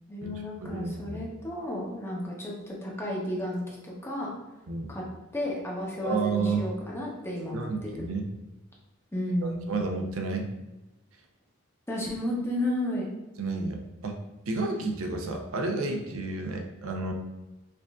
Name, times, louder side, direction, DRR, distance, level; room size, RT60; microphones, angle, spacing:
voice 1, 0.1-4.3 4.9-5.0 5.3-7.9 9.1-9.6 11.9-13.1, left 1 dB, 10° left, -3 dB, 0.7 m, -32 dB
voice 2, 0.6-1.2 4.7-4.9 6.0-6.6 7.5-8.3 9.4-10.5 13.4-13.8 14.0-14.2 14.5-17.1, right 3 dB, 75° right, 3 dB, 0.5 m, -31 dB
5.0 x 2.5 x 2.3 m, 1.0 s
head